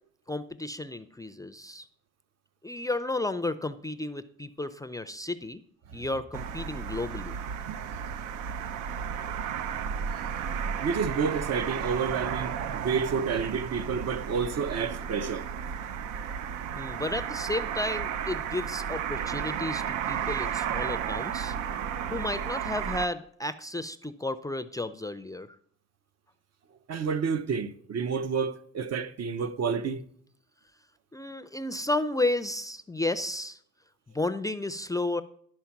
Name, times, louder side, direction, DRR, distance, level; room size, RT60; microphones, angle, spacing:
voice 1, 0.3-1.9 2.6-5.6 5.9-7.4 16.8-21.6 22.1-25.5 31.1-33.6 34.1-35.2, left 2 dB, 10° left, 0.4 m, -32 dB
sound 1, 6.3-23.1, right 8 dB, 90° right, 0.5 m, -33 dB
voice 2, 10.8-15.5 26.9-30.0, right 6 dB, 60° right, 0.8 m, -30 dB
11.5 x 4.4 x 5.8 m
cardioid pair, 90°, 30 cm